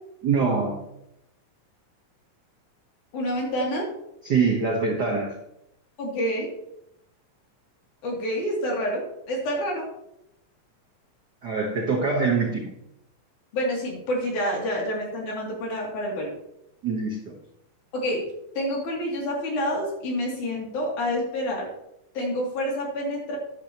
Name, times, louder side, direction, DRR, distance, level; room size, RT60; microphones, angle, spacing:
voice 1, 0.2-0.8 4.2-5.4 11.4-12.7 16.8-17.4, right 4 dB, 70° right, 2 dB, 0.9 m, -24 dB
voice 2, 3.1-3.9 6.0-6.5 8.0-9.9 13.5-16.3 17.9-18.3 18.6-21.7 22.2-23.4, equal, 80° left, -2 dB, 4.1 m, -28 dB
13.0 x 10.0 x 2.9 m, 0.82 s
omnidirectional pair, 3.5 m